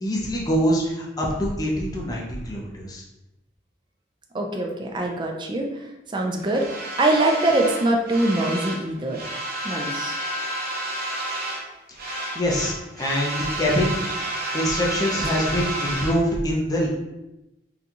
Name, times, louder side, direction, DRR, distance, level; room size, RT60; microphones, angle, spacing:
voice 1, 0.0-3.0 12.3-14.0 14.5-16.9, equal, 20° left, -3 dB, 0.6 m, -24 dB
voice 2, 4.3-5.7 6.1-9.2 9.6-10.2 15.2-15.4, right 2 dB, 25° right, 1 dB, 0.4 m, -23 dB
sound 1, 6.5-8.8 9.1-11.7 11.9-16.2, right 1 dB, 55° right, 0.7 m, -30 dB
3.9 x 2.3 x 2.8 m, 0.95 s
head